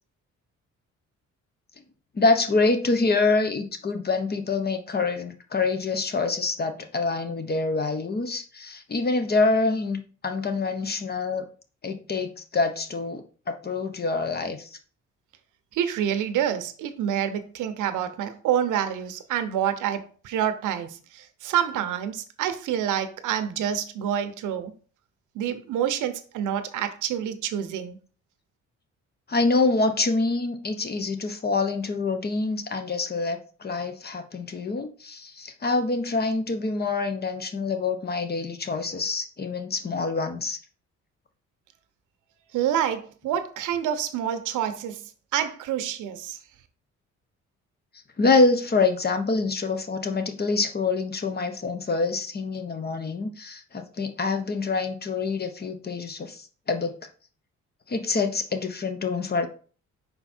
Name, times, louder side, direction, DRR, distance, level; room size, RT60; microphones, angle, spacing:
voice 1, 2.1-11.4 11.8-14.8 29.3-40.6 48.2-57.0 57.9-59.5, left 3 dB, 30° left, 1.1 m, -26 dB
voice 2, 15.7-24.7 25.3-28.0 42.5-45.0 45.3-46.4, right 9 dB, 85° right, 0.9 m, -27 dB
5.5 x 4.5 x 4.3 m
cardioid pair, 90°, 30 cm